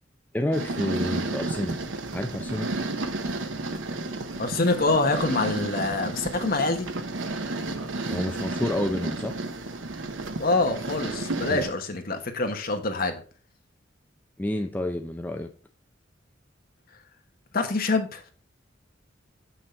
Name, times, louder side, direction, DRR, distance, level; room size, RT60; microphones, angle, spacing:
voice 1, 0.3-1.8 2.1-2.7 8.1-9.3 11.5-11.6 14.4-15.5, left 1 dB, 10° left, 0.5 m, -29 dB
sound 1, 0.5-11.7, right 2 dB, 90° right, 0.9 m, -32 dB
voice 2, 4.4-6.9 10.4-13.2 17.5-18.2, left 3 dB, 50° left, 1.3 m, -25 dB
6.7 x 6.3 x 4.5 m
head